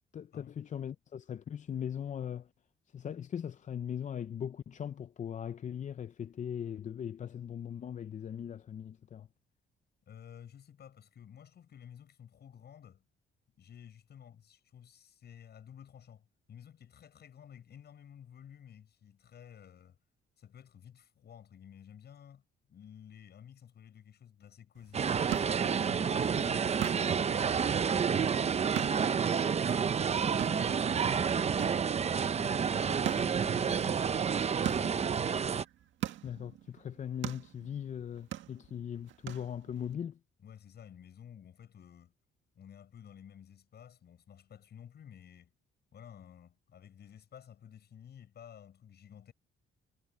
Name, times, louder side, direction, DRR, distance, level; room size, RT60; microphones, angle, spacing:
voice 1, 0.1-2.5 2.9-9.3 36.2-40.2, left 8 dB, 40° left, 0.6 m, -39 dB
voice 2, 10.1-13.0 13.6-20.0 20.4-22.4 22.7-25.1 25.6-29.1 30.4-31.6 32.3-35.3 40.4-42.2 42.5-45.5 45.9-49.3, left 9 dB, 55° left, 6.7 m, -53 dB
sound 1, 24.8-39.9, right 12 dB, 70° right, 1.9 m, -43 dB
sound 2, 24.9-35.6, right 7 dB, 30° right, 0.7 m, -29 dB
cardioid pair, 105°, 20 cm